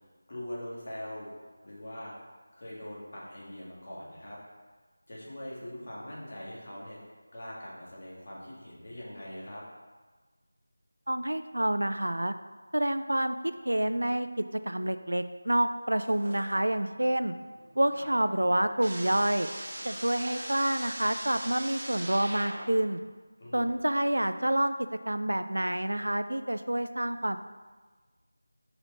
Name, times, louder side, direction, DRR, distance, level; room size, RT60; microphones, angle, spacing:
voice 1, 0.3-1.3 1.6-2.1 2.5-4.4 5.1-7.0 7.3-9.6 17.9-18.1 23.4-23.7, left 1 dB, 45° left, -6 dB, 1.8 m, -42 dB
voice 2, 11.1-12.3 12.7-13.4 13.6-17.3 17.8-19.5 19.8-23.0 23.5-24.7 25.1-27.4, right 1 dB, 90° right, 10 dB, 0.4 m, -28 dB
sound 1, 16.0-16.8 17.1-23.0, right 1 dB, 35° right, 1.4 m, -41 dB
5.6 x 4.2 x 4.0 m, 1.3 s
figure-of-eight pair, 170°, 0 cm